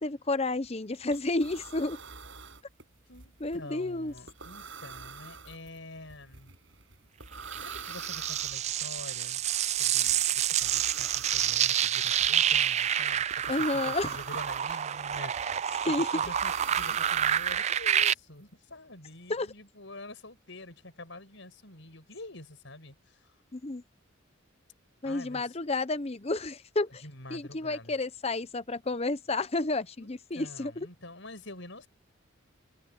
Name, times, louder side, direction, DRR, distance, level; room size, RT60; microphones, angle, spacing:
voice 1, 0.0-2.0 3.4-4.1 13.5-14.1 15.8-16.1 19.3-19.5 23.5-23.8 25.0-27.0 27.3-30.9, left 2 dB, 30° left, 0.8 m, -31 dB
sound 1, 0.6-0.7 0.9-18.0, right 5 dB, 65° right, 7.3 m, -46 dB
voice 2, 3.1-6.5 7.6-9.4 9.7-15.6 15.9-23.4 25.0-25.6 27.0-27.9 30.0-31.9, left 2 dB, 65° left, 7.2 m, -47 dB
sound 2, 7.5-18.1, right 10 dB, 35° right, 0.3 m, -28 dB
head